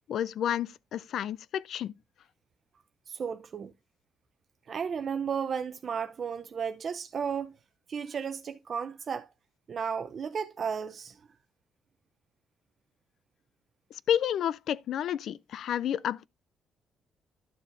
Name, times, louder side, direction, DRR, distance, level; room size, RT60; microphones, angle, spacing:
voice 1, 0.1-1.9 14.1-16.3, left 10 dB, 70° left, 0.4 m, -30 dB
voice 2, 3.1-3.7 4.7-7.5 7.9-9.3 9.7-11.2, right 6 dB, 50° right, 0.6 m, -34 dB
12.0 x 6.9 x 2.6 m
cardioid pair, 90°, 0 cm